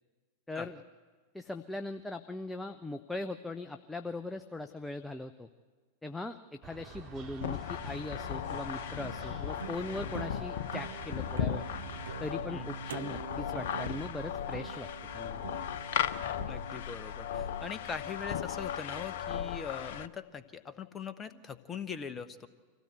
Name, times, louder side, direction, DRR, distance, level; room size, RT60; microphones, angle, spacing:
voice 1, 0.5-0.8 1.3-5.5 6.0-11.7 12.2-14.9 15.1-15.4, left 2 dB, 5° left, 7 dB, 0.7 m, -40 dB
sound 1, 6.6-12.1, right 4 dB, 35° right, 4.3 m, -48 dB
sound 2, 7.4-20.1, left 10 dB, 55° left, 0.6 m, -37 dB
sound 3, 7.8-19.0, right 7 dB, 70° right, 0.7 m, -46 dB
voice 2, 16.4-22.5, left 6 dB, 20° left, 12 dB, 1.1 m, -41 dB
25.0 x 16.5 x 8.0 m, 1.5 s
figure-of-eight pair, 90°, 0 cm